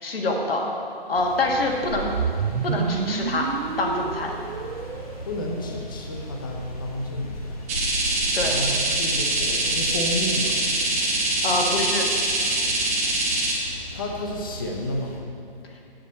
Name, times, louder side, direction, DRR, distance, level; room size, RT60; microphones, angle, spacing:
voice 1, 0.0-0.6 1.1-2.1 2.6-3.5 3.8-4.3 8.3-8.6 11.4-12.0, left 2 dB, 75° left, 0 dB, 1.5 m, -25 dB
sound 1, 1.1-15.2, left 1 dB, 40° left, 1.0 m, -38 dB
sound 2, 1.9-6.1, right 7 dB, 90° right, 0.5 m, -29 dB
voice 2, 5.2-7.7 8.4-10.6 13.9-15.2, left 1 dB, 20° left, 1 dB, 0.6 m, -31 dB
sound 3, 7.7-13.5, right 2 dB, 15° right, 0.7 m, -24 dB
7.5 x 6.9 x 4.2 m, 2.7 s
hypercardioid pair, 160°, 30 cm